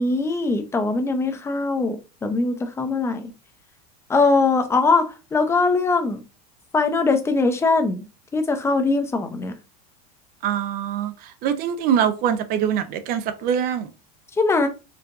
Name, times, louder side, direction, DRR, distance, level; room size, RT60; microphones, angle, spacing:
voice 1, 0.0-3.2 4.1-5.0 5.3-6.2 6.7-8.0 8.3-9.5 14.4-14.7, left 3 dB, 10° left, 0.6 m, -21 dB
voice 2, 10.4-11.1 11.4-13.9, right 8 dB, 45° right, 0.5 m, -23 dB
4.6 x 2.5 x 2.4 m
supercardioid pair, 130°, 21 cm